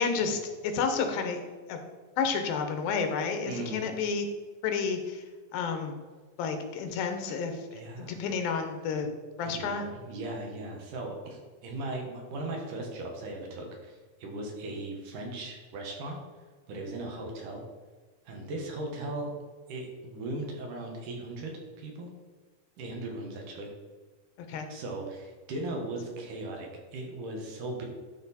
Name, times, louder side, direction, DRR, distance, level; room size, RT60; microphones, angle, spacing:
voice 1, 0.0-1.4 1.7-1.8 2.2-4.3 4.6-5.2 5.5-5.9 6.4-9.1 9.4-9.9 24.5-24.7, left 5 dB, 85° left, 6 dB, 2.8 m, -30 dB
voice 2, 3.5-3.9 7.3-7.4 7.7-8.2 9.4-16.2 16.7-17.6 18.3-19.3 19.7-21.5 21.8-22.1 22.8-23.7 24.7-27.8, right 2 dB, 65° right, 1 dB, 2.7 m, -38 dB
12.0 x 4.4 x 4.2 m, 1.4 s
omnidirectional pair, 4.1 m